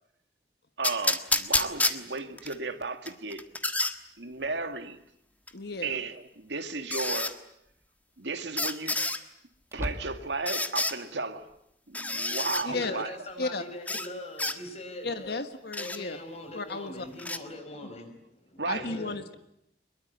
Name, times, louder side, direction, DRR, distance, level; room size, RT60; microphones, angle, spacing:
sound 1, 0.8-2.5 3.1-3.9 5.5-5.6 6.9-7.3 8.6-9.2 10.5-11.0 11.9-12.6 13.9-14.1 14.4-14.6 15.7-16.0 17.2-17.4, left 2 dB, 10° left, 1.4 m, -29 dB
voice 1, 0.8-3.5 4.2-5.0 5.8-7.4 8.2-9.0 9.7-11.5 11.9-13.1 18.6-18.9, right 3 dB, 90° right, 2.0 m, -34 dB
sound 2, 5.1-5.2 7.0-7.4 7.8-7.9 9.6-10.5, equal, 15° right, 2.0 m, -38 dB
voice 2, 5.5-6.0 12.6-12.9 13.4-13.6 15.0-16.2 16.5-17.0 17.8-17.9 18.7-19.3, left 3 dB, 65° left, 1.5 m, -34 dB
voice 3, 12.7-15.4 15.8-18.4 18.7-19.2, left 1 dB, 40° left, 5.2 m, -41 dB
24.0 x 22.5 x 9.6 m
head